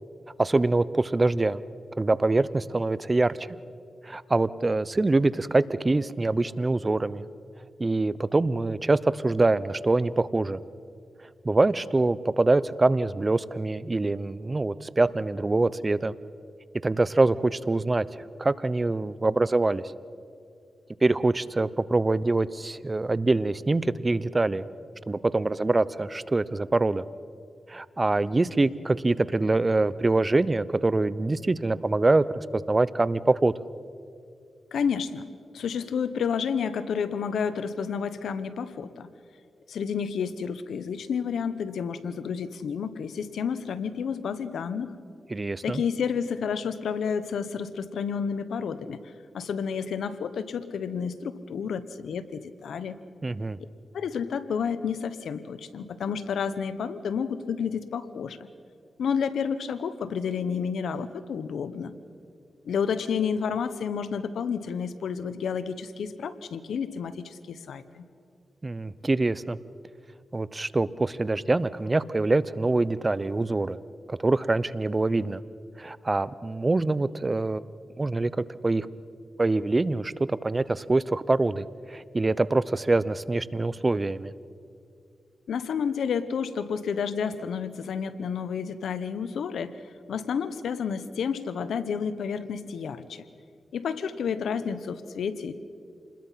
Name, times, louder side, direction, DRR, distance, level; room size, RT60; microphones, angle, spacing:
voice 1, 0.4-1.6 2.0-3.6 4.0-7.2 7.8-10.6 11.4-16.1 16.8-19.8 21.0-24.7 25.1-27.0 27.7-33.5 45.3-45.8 53.2-53.6 68.6-69.6 70.3-73.8 74.1-75.4 75.8-77.6 78.0-78.9 79.4-84.3, right 2 dB, 35° right, 18 dB, 0.8 m, -24 dB
voice 2, 34.7-35.3 35.5-39.1 39.7-44.9 45.6-49.0 49.3-53.0 53.9-58.5 59.0-61.9 62.6-68.1 85.5-89.7 90.1-93.2 93.7-95.5, left 6 dB, 90° left, 13 dB, 1.0 m, -30 dB
28.0 x 21.0 x 5.8 m, 2.3 s
cardioid pair, 55°, 0 cm